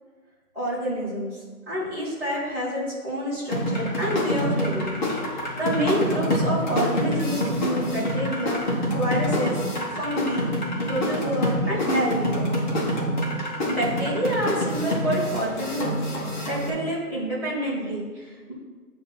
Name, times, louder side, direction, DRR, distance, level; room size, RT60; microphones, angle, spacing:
voice 1, 0.5-1.3 1.7-5.0 5.3-8.6 8.9-9.6 9.9-10.5 10.9-12.5 13.7-18.5, equal, 5° right, -14 dB, 1.9 m, -28 dB
sound 1, 3.5-16.7, equal, 30° left, 1.2 m, -26 dB
8.2 x 2.9 x 5.9 m, 1.5 s
hypercardioid pair, 165°, 45 cm